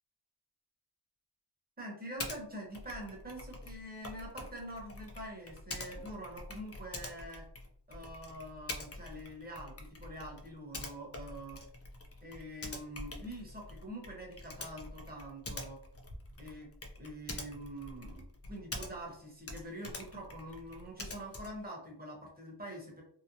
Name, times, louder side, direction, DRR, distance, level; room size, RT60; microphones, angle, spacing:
voice 1, 1.8-7.4 7.9-9.7 10.0-11.6 12.2-15.8 16.4-16.7 17.0-23.0, right 1 dB, 20° right, -2 dB, 1.0 m, -45 dB
Typing, 2.2-2.4 2.7-19.2 19.4-21.7, left 2 dB, 35° left, 0.4 m, -46 dB
2.9 x 2.0 x 2.6 m, 0.65 s
wide cardioid pair, 80°, 46 cm